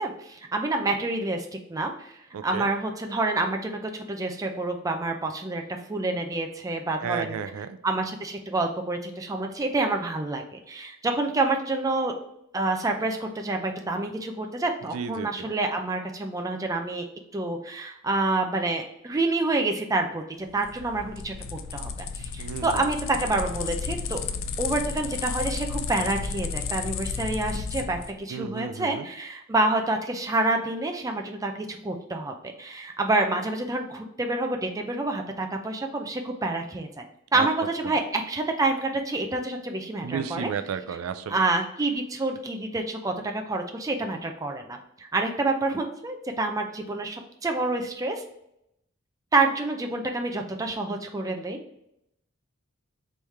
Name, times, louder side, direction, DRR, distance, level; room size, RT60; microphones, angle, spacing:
voice 1, 0.0-2.1 2.4-7.4 7.8-12.1 12.5-17.1 17.3-24.2 24.6-37.0 37.3-40.5 41.3-48.2 49.3-51.6, right 2 dB, 15° right, 3 dB, 0.4 m, -28 dB
voice 2, 2.3-2.7 7.0-7.8 14.9-15.3 22.4-22.8 28.3-29.1 37.3-37.5 40.0-41.4, right 7 dB, 80° right, 10 dB, 0.3 m, -32 dB
sound 1, 20.5-28.1, left 5 dB, 65° left, 0.4 m, -33 dB
3.5 x 3.2 x 4.1 m, 0.79 s
head